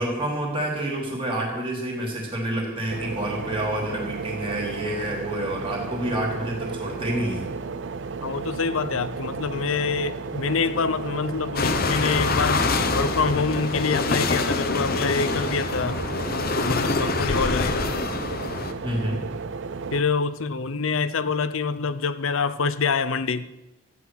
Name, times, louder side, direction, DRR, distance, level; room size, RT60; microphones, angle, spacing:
voice 1, 0.0-7.5 18.8-19.2, right 1 dB, 25° right, -1 dB, 3.3 m, -28 dB
sound 1, 2.9-20.0, right 4 dB, 60° right, 0.5 m, -33 dB
voice 2, 8.2-12.7 12.9-16.0 16.6-17.8 19.9-23.5, left 5 dB, 70° left, 14 dB, 0.7 m, -26 dB
sound 2, 11.6-18.7, left 3 dB, 45° left, 0.9 m, -25 dB
14.0 x 9.4 x 6.1 m, 0.97 s
head